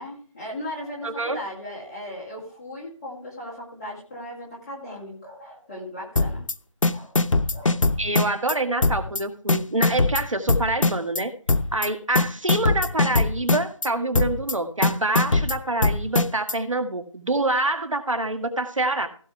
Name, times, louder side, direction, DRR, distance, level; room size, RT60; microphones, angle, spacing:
voice 1, 0.0-6.4 6.9-7.2 7.5-7.8 17.6-17.9, left 1 dB, 10° left, -5 dB, 2.2 m, -37 dB
voice 2, 1.0-1.4 8.0-11.3 11.7-19.1, right 2 dB, 75° right, 7 dB, 2.0 m, -26 dB
sound 1, 6.2-6.5 6.8-8.5 8.8-9.2 9.5-11.2 11.5-11.9 12.2-13.9 14.1-14.5 14.8-16.5, left 3 dB, 70° left, 0.7 m, -21 dB
16.5 x 6.8 x 3.3 m, 0.43 s
figure-of-eight pair, 170°, 17 cm